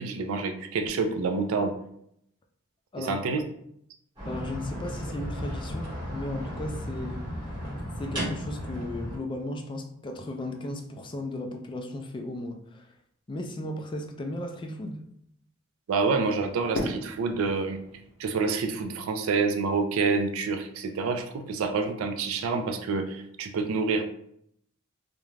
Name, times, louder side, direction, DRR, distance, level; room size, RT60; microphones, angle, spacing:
voice 1, 0.0-1.7 3.0-3.4 15.9-17.8 18.2-24.0, right 4 dB, 85° right, 6 dB, 0.4 m, -27 dB
voice 2, 2.9-3.2 4.3-7.2 8.0-12.9 13.3-15.0, left 1 dB, 25° left, 4 dB, 0.3 m, -35 dB
sound 1, 4.2-9.2, equal, 20° right, 1.0 m, -34 dB
Fireworks, 16.7-19.8, left 1 dB, 60° left, 0.6 m, -37 dB
2.4 x 2.1 x 3.1 m, 0.72 s
head